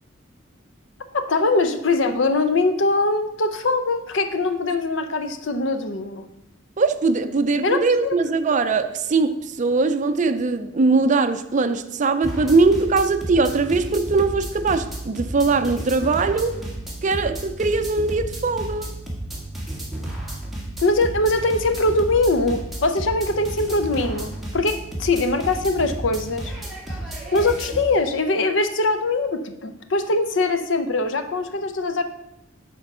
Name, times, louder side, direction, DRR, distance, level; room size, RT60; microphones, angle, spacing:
voice 1, 1.1-6.3 7.6-8.2 20.8-26.5 27.3-32.0, left 2 dB, 70° left, 0.7 m, -22 dB
voice 2, 6.8-16.6 17.0-18.9, right 3 dB, 40° right, 0.5 m, -21 dB
sound 1, 12.2-27.8, right 1 dB, ahead, 1.6 m, -32 dB
8.2 x 4.5 x 5.5 m
head